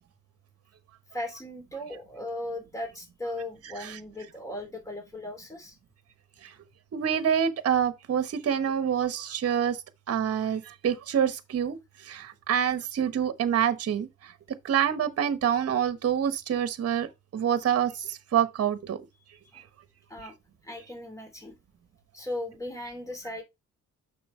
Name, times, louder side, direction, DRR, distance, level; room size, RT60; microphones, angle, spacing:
voice 1, 1.1-5.8 19.5-19.7 20.1-20.3 20.6-21.5 22.1-23.4, left 1 dB, 10° left, 2.8 m, -37 dB
voice 2, 6.9-9.8 10.1-11.8 12.0-14.3 14.6-19.0, right 9 dB, 50° right, 1.2 m, -27 dB
6.9 x 6.0 x 3.3 m
cardioid pair, 90°, 30 cm